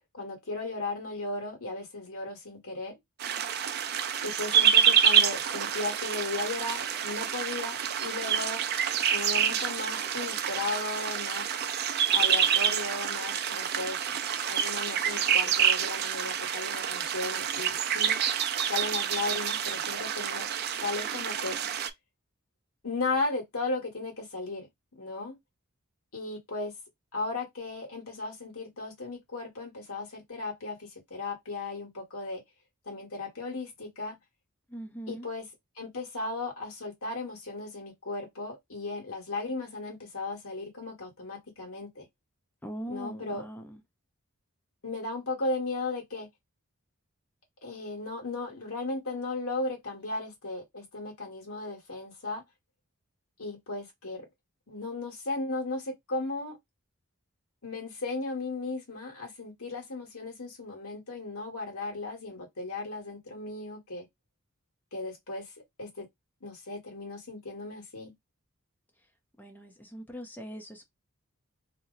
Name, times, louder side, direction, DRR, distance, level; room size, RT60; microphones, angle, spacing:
voice 1, 0.1-3.0 4.2-8.6 9.1-11.5 12.1-18.2 18.7-20.5 20.8-21.6 22.8-24.7 24.9-25.3 26.1-26.7 27.1-32.4 32.8-34.2 35.1-42.1 42.9-43.5 44.8-46.3 47.6-52.4 53.4-54.3 54.7-56.6 57.6-64.0 64.9-65.5 65.8-66.0 66.4-68.1, left 3 dB, 75° left, 1.5 m, -36 dB
sound 1, 3.2-21.9, right 8 dB, 45° right, 0.4 m, -27 dB
voice 2, 34.7-35.3 42.6-43.8 69.4-70.8, equal, 10° left, 0.6 m, -41 dB
2.9 x 2.1 x 3.8 m
head